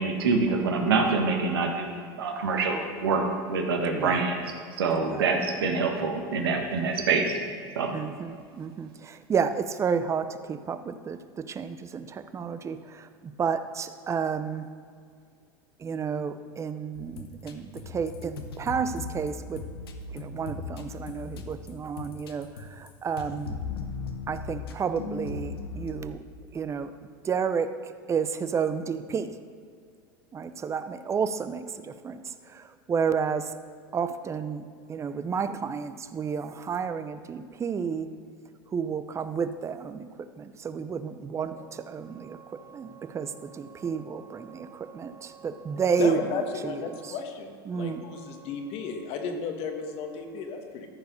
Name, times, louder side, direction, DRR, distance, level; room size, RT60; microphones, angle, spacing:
voice 1, 0.0-4.4 4.8-7.3 7.7-7.9, right 4 dB, 85° right, 3 dB, 1.4 m, -26 dB
voice 2, 7.9-11.2 11.5-13.1 13.4-14.7 15.8-19.6 20.1-22.5 22.8-23.5 24.3-26.2 26.5-26.9 27.2-27.7 28.1-29.3 30.3-32.2 32.5-33.5 33.9-34.6 34.9-38.1 38.7-40.0 40.4-47.2 47.7-49.0, right 6 dB, 25° right, 11 dB, 0.6 m, -31 dB
sound 1, 16.9-22.9 23.2-26.0, left 4 dB, 85° left, 0.9 m, -38 dB
voice 3, 46.0-50.9, left 5 dB, 55° left, 5 dB, 1.4 m, -34 dB
14.0 x 4.8 x 5.2 m, 2.2 s
hypercardioid pair, 100°, 12 cm